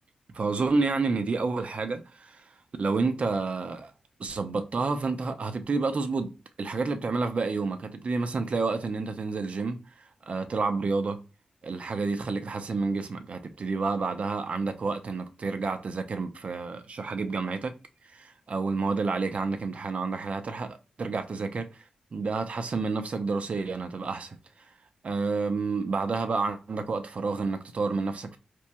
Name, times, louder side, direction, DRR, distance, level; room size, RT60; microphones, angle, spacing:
voice 1, 0.3-2.4 2.8-3.9 4.2-6.3 6.6-9.8 10.3-11.2 11.6-17.8 18.0-21.8 22.1-24.4 25.0-28.4, right 4 dB, 55° right, 0.5 m, -29 dB
3.0 x 2.5 x 2.2 m
cardioid pair, 50°, 3 cm